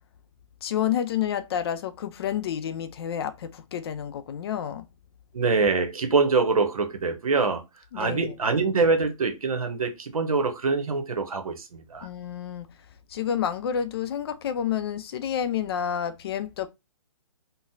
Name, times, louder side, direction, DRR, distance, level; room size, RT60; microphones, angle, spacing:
voice 1, 0.6-4.8 7.9-8.3 12.0-12.7 13.1-16.7, left 9 dB, 45° left, 0.4 m, -29 dB
voice 2, 5.3-7.6 7.9-12.1, right 4 dB, 90° right, 0.8 m, -24 dB
3.9 x 2.0 x 2.5 m
hypercardioid pair, 145°, 18 cm